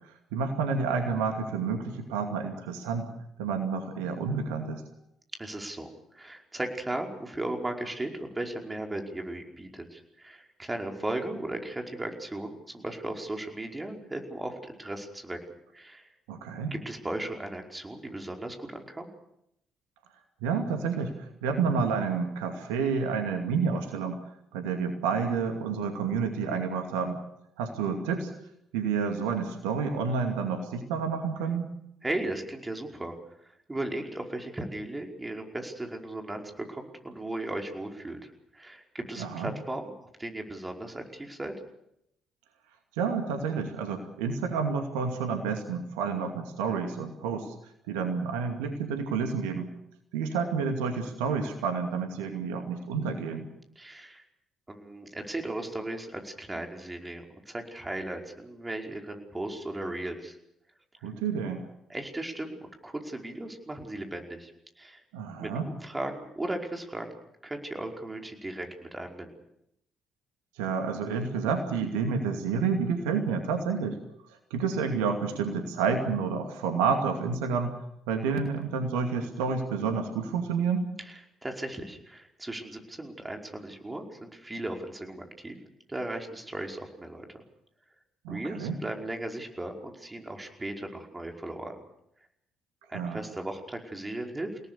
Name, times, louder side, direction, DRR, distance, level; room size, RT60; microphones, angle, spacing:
voice 1, 0.3-3.1 3.4-4.8 16.3-16.7 20.4-24.2 24.5-27.2 27.6-28.3 28.7-31.7 39.2-39.5 43.0-47.5 47.9-49.7 50.1-53.5 61.0-61.6 65.1-65.7 70.6-74.0 74.3-77.8 78.1-80.9 88.2-88.8 92.9-93.2, right 5 dB, 75° right, 5 dB, 2.4 m, -29 dB
voice 2, 5.4-15.4 15.7-16.1 16.7-19.1 32.0-33.1 33.7-38.2 38.5-39.9 40.2-41.5 53.7-54.2 54.7-60.4 61.0-61.1 61.9-64.5 64.8-65.0 65.4-67.1 67.4-69.3 81.0-85.6 85.9-87.2 88.3-91.8 92.9-94.6, right 1 dB, 20° right, 3 dB, 5.1 m, -36 dB
30.0 x 18.5 x 6.8 m, 0.77 s
figure-of-eight pair, 45°, 0 cm